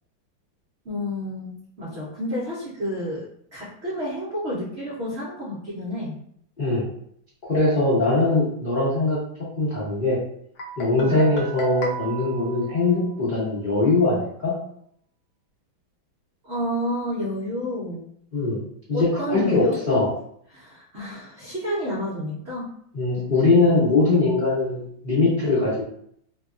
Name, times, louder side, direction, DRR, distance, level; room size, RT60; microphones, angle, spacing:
voice 1, 0.8-3.3 3.5-6.2 10.9-11.3 16.4-18.1 18.9-19.8 20.5-22.7, equal, 70° right, -8 dB, 0.6 m, -30 dB
voice 2, 7.5-9.2 9.6-10.2 10.8-14.5 18.3-18.6 18.9-20.1 22.9-25.8, left 2 dB, 45° left, -9 dB, 0.6 m, -21 dB
Guitar, 10.6-13.4, right 1 dB, 65° left, 1.0 m, -34 dB
3.2 x 2.3 x 2.4 m, 0.67 s
omnidirectional pair, 2.3 m